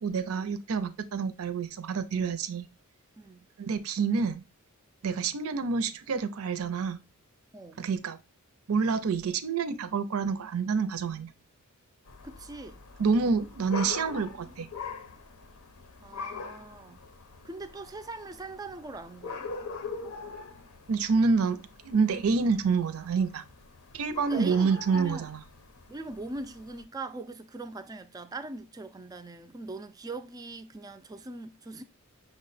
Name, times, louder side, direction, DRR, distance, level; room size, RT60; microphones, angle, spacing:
voice 1, 0.0-2.7 3.6-4.4 5.0-7.0 7.8-8.2 8.7-11.3 13.0-14.7 20.9-23.4 23.9-25.4, right 5 dB, 70° right, 0.5 m, -28 dB
voice 2, 3.2-3.5 7.5-7.8 12.2-12.8 16.0-17.0 17.4-19.5 24.3-25.3 25.9-31.8, right 2 dB, 15° right, 0.3 m, -41 dB
sound 1, 12.1-26.8, left 3 dB, 80° left, 0.7 m, -43 dB
6.0 x 2.1 x 3.9 m
head